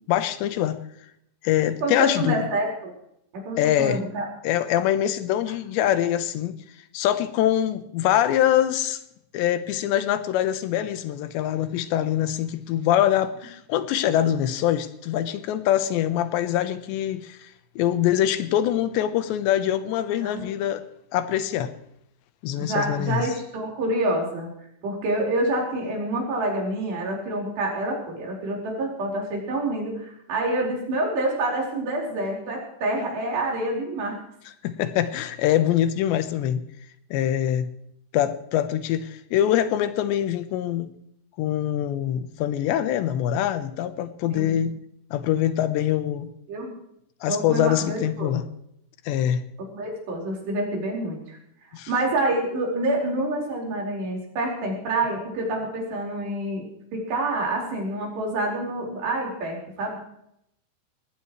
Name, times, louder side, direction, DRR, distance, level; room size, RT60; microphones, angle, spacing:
voice 1, 0.1-0.8 1.4-2.4 3.6-4.0 4.4-6.6 6.9-9.0 9.3-17.5 17.8-20.8 21.1-21.7 22.4-23.3 34.6-36.6 37.1-37.7 38.1-40.9 41.4-44.8 45.1-46.3 47.2-48.4 49.1-49.4 51.7-51.9, left 11 dB, 90° left, 12 dB, 3.3 m, -24 dB
voice 2, 1.8-2.9 3.3-4.3 20.2-20.5 22.6-24.5 24.8-34.2 44.3-44.6 46.5-46.8 47.3-48.3 49.7-51.4 51.7-60.0, right 2 dB, 75° right, -1 dB, 6.9 m, -27 dB
20.5 x 17.5 x 3.2 m, 0.74 s
omnidirectional pair, 4.9 m